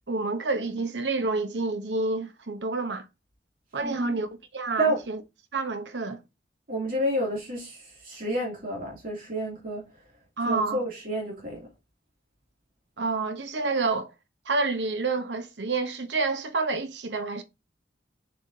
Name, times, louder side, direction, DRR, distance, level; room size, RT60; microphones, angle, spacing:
voice 1, 0.1-3.1 3.7-5.2 5.5-6.2 10.4-10.8 13.0-14.1 14.5-17.4, right 3 dB, 85° right, 1.0 m, -28 dB
voice 2, 3.8-4.2 4.8-5.0 6.7-9.8 10.4-11.7, right 1 dB, 55° right, 2.8 m, -30 dB
6.9 x 5.6 x 2.8 m
head